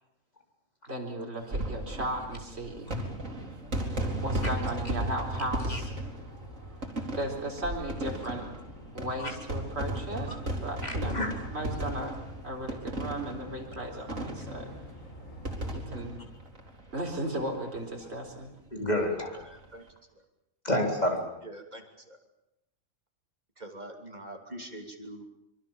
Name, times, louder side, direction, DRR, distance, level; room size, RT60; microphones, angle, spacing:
voice 1, 0.9-2.9 4.2-5.9 7.2-8.4 8.9-11.2 11.5-12.1 12.4-14.7 15.7-16.2 16.9-18.5, right 1 dB, 55° right, 0 dB, 4.5 m, -35 dB
sound 1, 1.4-17.4 17.7-17.8 18.0-18.1 19.4-19.6, right 1 dB, 80° right, 3.7 m, -36 dB
sound 2, 4.1-15.6, left 1 dB, 90° left, 5.1 m, -50 dB
voice 2, 10.8-11.5 18.7-19.4 20.6-21.2, left 1 dB, 30° left, 2 dB, 4.2 m, -29 dB
voice 3, 17.4-17.7 19.2-19.8 20.1-20.2 21.4-22.2 23.6-25.3, right 1 dB, 35° right, 3 dB, 3.3 m, -44 dB
25.0 x 23.5 x 7.3 m, 0.87 s
omnidirectional pair, 1.3 m